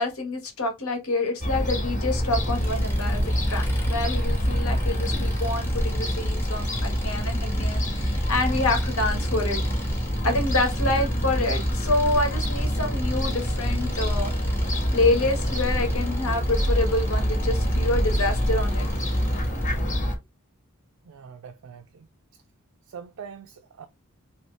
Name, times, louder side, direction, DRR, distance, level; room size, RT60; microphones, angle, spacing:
voice 1, 0.0-9.6 9.9-14.3 14.9-18.9, left 2 dB, 75° left, 1.2 m, -27 dB
Fowl / Gull seagull, 1.4-20.2, equal, 35° left, 1.0 m, -26 dB
Engine, 2.3-19.8, equal, 10° left, 0.7 m, -39 dB
voice 2, 21.0-22.1 22.9-23.9, right 7 dB, 75° right, 0.4 m, -43 dB
2.8 x 2.8 x 3.1 m
head